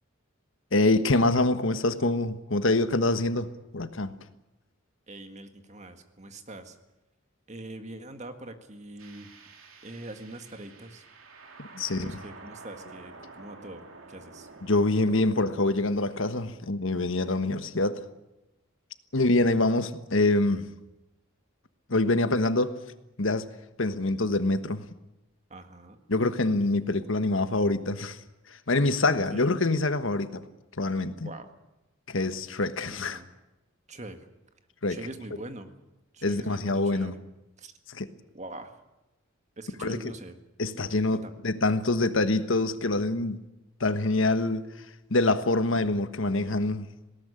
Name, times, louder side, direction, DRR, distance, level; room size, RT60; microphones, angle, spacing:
voice 1, 0.7-4.1 11.6-12.1 14.6-18.0 19.1-20.6 21.9-22.8 23.2-23.5 23.8-24.8 26.1-28.2 28.7-30.4 30.8-31.3 32.1-33.2 34.8-35.0 36.2-37.1 37.9-38.1 39.8-40.0 40.6-43.4 43.8-44.7 45.1-46.9, left 2 dB, 70° left, 10 dB, 1.4 m, -25 dB
voice 2, 5.1-6.8 7.5-9.3 9.8-11.0 11.8-14.5 19.4-19.6 25.5-26.0 29.3-29.4 31.1-31.5 32.9-33.3 33.9-34.3 34.9-35.7 36.1-37.2 37.6-37.7 38.3-38.8 39.6-40.4 40.8-41.3, right 2 dB, 35° right, 7 dB, 1.8 m, -43 dB
sound 1, 9.0-16.5, right 3 dB, 85° right, 3.2 m, -49 dB
20.0 x 18.0 x 10.0 m, 0.96 s
head